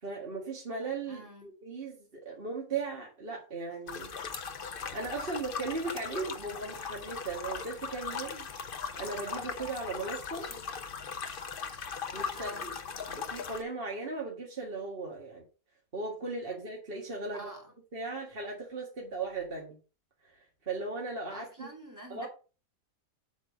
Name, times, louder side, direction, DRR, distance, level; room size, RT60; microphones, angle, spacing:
voice 1, 0.0-4.1 4.9-10.5 12.1-12.8 13.1-15.4 15.9-17.5 17.9-19.8 20.3-21.7 22.1-22.3, right 3 dB, 40° right, 2.1 m, -37 dB
voice 2, 1.1-1.5 10.5-10.6 12.3-12.7 17.3-17.7 21.3-22.3, right 1 dB, 15° right, 2.4 m, -47 dB
sound 1, 3.9-13.6, left 5 dB, 45° left, 0.9 m, -39 dB
8.3 x 3.8 x 6.3 m
omnidirectional pair, 1.4 m